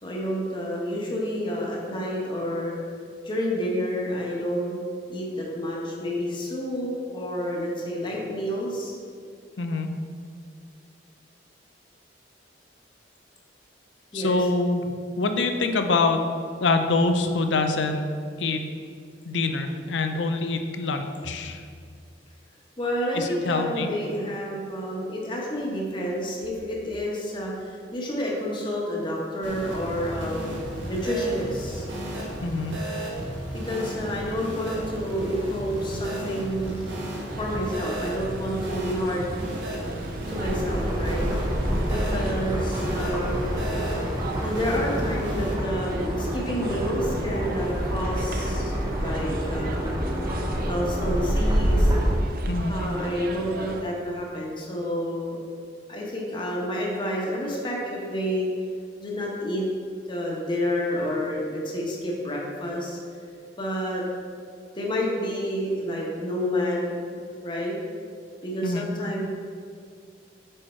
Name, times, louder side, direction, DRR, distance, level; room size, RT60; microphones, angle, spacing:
voice 1, 0.0-2.7 3.2-4.8 5.1-8.9 14.1-14.4 22.8-31.9 33.6-36.8 37.4-39.3 40.3-41.3 41.9-43.4 44.4-49.9 50.7-51.9 52.7-55.4 55.9-58.5 59.0-59.7 60.1-63.0 63.6-64.0 64.7-67.2 67.4-67.8 68.4-69.3, equal, 25° left, -3 dB, 1.1 m, -29 dB
voice 2, 9.6-9.9 14.1-14.8 15.2-16.2 16.6-18.1 18.4-18.6 19.2-21.6 23.1-23.9 32.4-32.8 52.5-52.7 68.6-68.9, left 3 dB, 75° left, 6 dB, 0.5 m, -25 dB
sound 1, 29.4-45.5, right 1 dB, 85° right, 1.3 m, -34 dB
sound 2, 37.3-53.8, right 2 dB, 55° right, 0.4 m, -38 dB
sound 3, 40.4-52.1, equal, 20° right, 0.9 m, -27 dB
6.5 x 4.4 x 4.4 m, 2.2 s
head